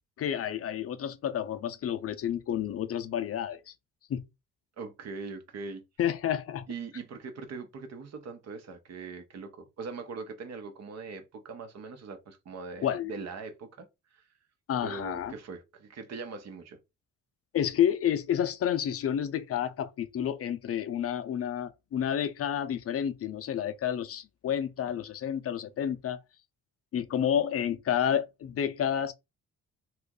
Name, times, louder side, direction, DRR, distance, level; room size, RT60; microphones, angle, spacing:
voice 1, 0.2-3.7 4.1-4.2 6.0-6.6 12.8-13.1 14.7-15.3 17.5-26.2 26.9-29.1, left 9 dB, 50° left, 0.5 m, -30 dB
voice 2, 4.8-5.8 6.7-14.2 14.8-16.8, right 4 dB, 60° right, 0.9 m, -41 dB
3.0 x 2.4 x 3.6 m
cardioid pair, 90°, 30 cm